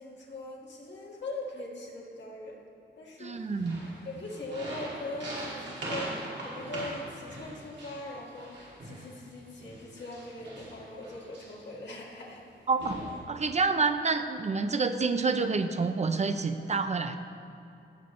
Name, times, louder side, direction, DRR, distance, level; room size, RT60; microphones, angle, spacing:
voice 1, 0.0-2.6 3.0-3.7 4.0-12.5, left 2 dB, 70° left, -2 dB, 1.8 m, -41 dB
voice 2, 3.2-3.8 12.7-13.0 13.3-17.2, right 4 dB, 35° right, 8 dB, 0.5 m, -28 dB
sound 1, 3.5-9.1 9.6-11.7 12.4-12.5 12.8-13.2, right 1 dB, 70° right, 2.7 m, -41 dB
17.0 x 7.4 x 3.2 m, 2.7 s
wide cardioid pair, 140°, 19 cm